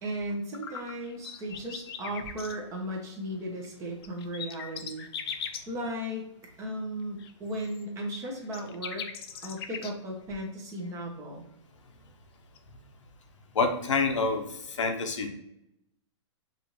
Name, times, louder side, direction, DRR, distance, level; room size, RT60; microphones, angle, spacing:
voice 1, 0.0-6.3 6.6-9.1 9.4-11.5, right 1 dB, 20° right, 0 dB, 0.9 m, -36 dB
sound 1, 1.0-2.5 3.9-5.6 7.2-9.9 12.6-12.7, left 7 dB, 55° left, 0.5 m, -39 dB
voice 2, 13.5-15.3, left 4 dB, 85° left, 4 dB, 0.9 m, -27 dB
5.3 x 2.7 x 3.1 m, 0.79 s
hypercardioid pair, 150°, 15 cm